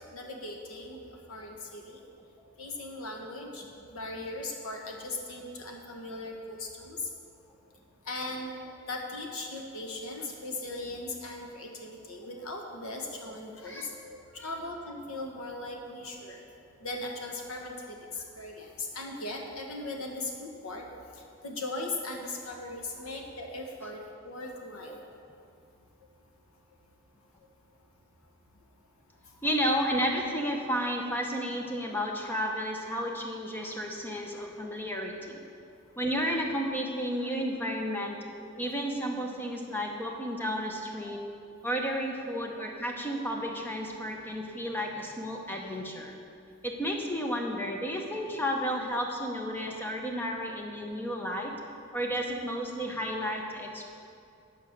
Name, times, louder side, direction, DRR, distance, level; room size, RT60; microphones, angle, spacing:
voice 1, 0.1-1.0 1.3-2.0 2.6-3.6 3.9-7.1 8.1-8.6 8.9-16.4 16.8-20.8 21.4-25.0, left 2 dB, 80° left, 1 dB, 1.3 m, -38 dB
voice 2, 29.4-35.4 36.0-38.2 38.6-41.3 41.6-46.1 46.6-51.6 51.9-53.8, equal, 10° left, 1 dB, 0.8 m, -32 dB
10.5 x 5.2 x 6.6 m, 2.5 s
head